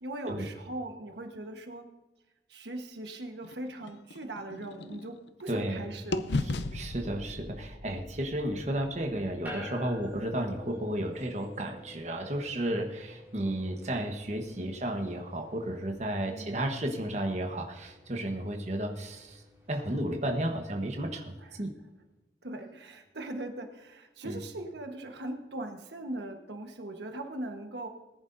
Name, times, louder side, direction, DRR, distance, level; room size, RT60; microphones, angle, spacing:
voice 1, 0.0-1.9 2.5-6.2 14.4-14.7 16.3-16.6 21.4-21.6 22.4-27.9, right 1 dB, 80° right, 4 dB, 1.3 m, -40 dB
sound 1, 3.4-5.7 6.1-10.1, left 2 dB, 80° left, 0.7 m, -37 dB
voice 2, 5.5-5.9 6.7-19.4 19.7-21.7 24.2-24.4, right 1 dB, 40° right, 3 dB, 1.2 m, -33 dB
sound 2, 9.4-21.0, left 1 dB, 10° right, 4.8 m, -50 dB
20.0 x 10.5 x 2.7 m, 1.1 s
head